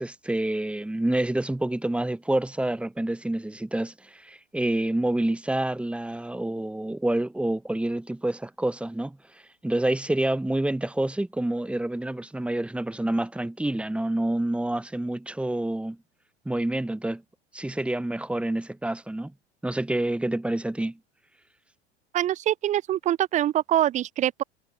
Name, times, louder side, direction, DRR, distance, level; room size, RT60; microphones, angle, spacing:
voice 1, 0.0-9.2 9.6-16.0 16.4-17.2 17.5-19.3 19.6-21.0, right 1 dB, 5° right, 0.9 m, -28 dB
voice 2, 22.1-24.4, right 12 dB, 20° right, 0.5 m, -24 dB
figure-of-eight pair, 75°, 33 cm